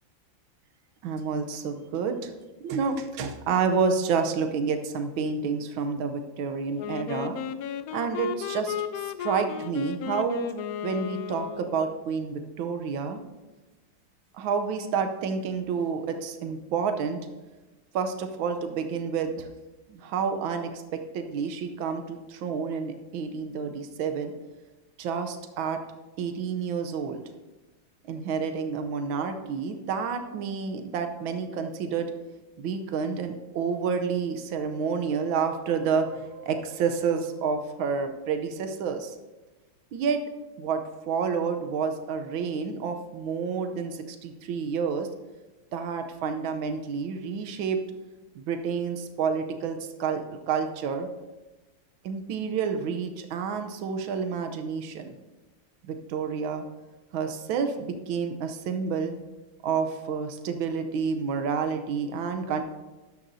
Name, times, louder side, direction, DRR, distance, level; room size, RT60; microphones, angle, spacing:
voice 1, 1.0-2.3 2.6-7.4 7.9-10.4 10.8-13.2 14.4-17.2 17.9-19.5 19.9-24.3 25.0-25.8 26.2-27.2 28.1-32.1 32.6-39.2 39.9-40.2 40.6-45.1 45.7-47.8 48.3-51.1 52.0-55.1 55.8-56.6 57.1-59.1 59.6-62.6, right 6 dB, 85° right, 6 dB, 1.6 m, -29 dB
Wind instrument woodwind instrument, 6.7-11.9, left 8 dB, 80° left, 0.8 m, -34 dB
13.0 x 10.0 x 2.7 m, 1.1 s
omnidirectional pair, 2.1 m